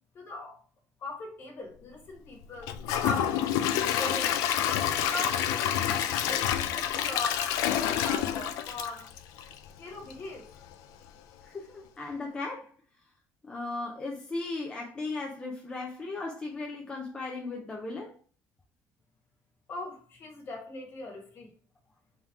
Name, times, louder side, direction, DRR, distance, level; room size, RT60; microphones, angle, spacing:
voice 1, 0.1-0.6 1.0-4.4 5.0-9.1 9.8-10.5 19.7-21.5, left 2 dB, 35° left, 1.3 m, -40 dB
Gurgling / Toilet flush / Trickle dribble, 2.6-9.7 10.1-10.2 10.7-10.8, left 10 dB, 85° left, 0.4 m, -28 dB
voice 2, 11.4-12.7 13.4-18.1, left 3 dB, 15° left, 0.5 m, -36 dB
3.6 x 2.9 x 4.6 m
cardioid pair, 165°, 6 cm